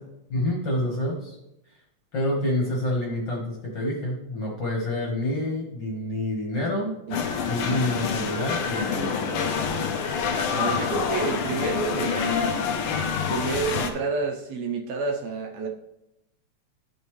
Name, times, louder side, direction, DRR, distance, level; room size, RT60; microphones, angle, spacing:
voice 1, 0.3-1.4 2.1-6.9 7.5-9.1, left 1 dB, 50° left, -2 dB, 1.6 m, -27 dB
sound 1, 7.1-13.9, left 6 dB, 80° left, 1.2 m, -27 dB
voice 2, 10.5-12.4 13.3-15.7, right 4 dB, 75° right, 1 dB, 1.9 m, -29 dB
11.5 x 5.4 x 3.1 m, 0.88 s
omnidirectional pair, 3.4 m